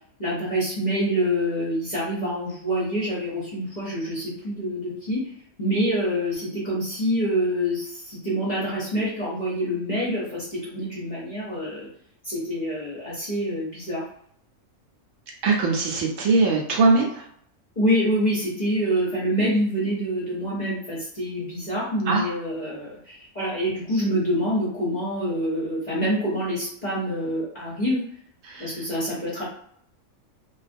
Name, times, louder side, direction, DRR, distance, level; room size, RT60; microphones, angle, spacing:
voice 1, 0.2-5.3 5.6-11.9 12.2-14.0 17.8-28.0 28.6-29.4, equal, 40° left, -7 dB, 0.7 m, -26 dB
voice 2, 15.4-17.3 22.1-22.2 28.4-28.8, right 3 dB, 70° right, -1 dB, 0.9 m, -21 dB
2.4 x 2.3 x 2.5 m, 0.66 s
omnidirectional pair, 1.5 m